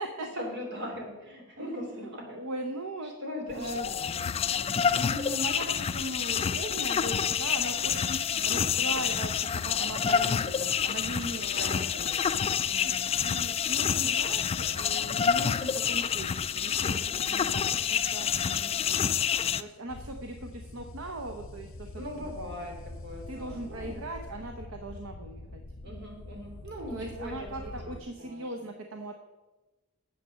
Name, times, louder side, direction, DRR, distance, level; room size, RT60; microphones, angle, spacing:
voice 1, 0.2-2.4 3.0-3.8 4.1-4.3 4.5-4.8 8.5-8.9 11.3-11.8 12.1-13.5 17.3-17.5 18.4-19.1 22.0-24.0 25.8-28.5, left 1 dB, 55° right, 1 dB, 2.9 m, -41 dB
voice 2, 2.0-3.1 3.5-3.9 4.8-8.2 8.5-12.1 12.8-17.6 17.9-18.3 19.4-22.3 23.3-25.6 26.9-29.2, right 1 dB, 75° right, 5 dB, 0.9 m, -39 dB
sound 1, 3.5-19.6, left 8 dB, 30° left, 0.3 m, -28 dB
sound 2, 19.9-28.0, left 2 dB, 65° left, 0.8 m, -44 dB
9.4 x 7.5 x 6.4 m, 1.2 s
head